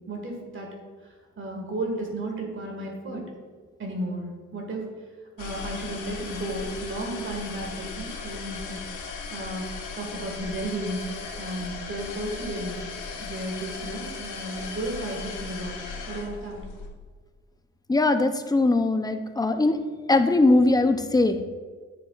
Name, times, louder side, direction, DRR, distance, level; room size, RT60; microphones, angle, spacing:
voice 1, 0.1-0.7 1.4-3.2 3.8-4.9 5.4-9.7 9.9-11.1 11.4-12.8 13.2-15.7 16.1-16.6, right 1 dB, 40° right, 1 dB, 1.7 m, -33 dB
sound 1, 5.4-16.9, left 5 dB, 85° left, 1.0 m, -37 dB
voice 2, 17.9-19.8 20.1-21.4, left 2 dB, 15° left, 9 dB, 0.5 m, -21 dB
9.3 x 7.0 x 2.4 m, 1.5 s
cardioid pair, 90°, 30 cm